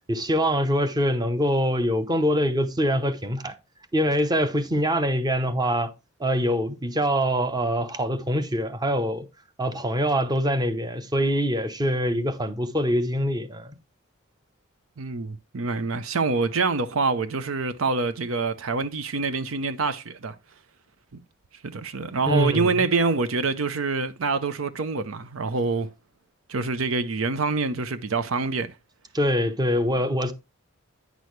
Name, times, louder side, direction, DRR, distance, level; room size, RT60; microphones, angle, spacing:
voice 1, 0.1-3.6 3.9-5.9 6.2-9.3 9.6-13.7 22.3-22.7 29.1-30.3, equal, 20° right, 0.8 m, -24 dB
voice 2, 15.0-20.3 21.6-25.9 26.5-28.7, right 4 dB, 70° right, 0.6 m, -26 dB
9.4 x 6.2 x 3.2 m
head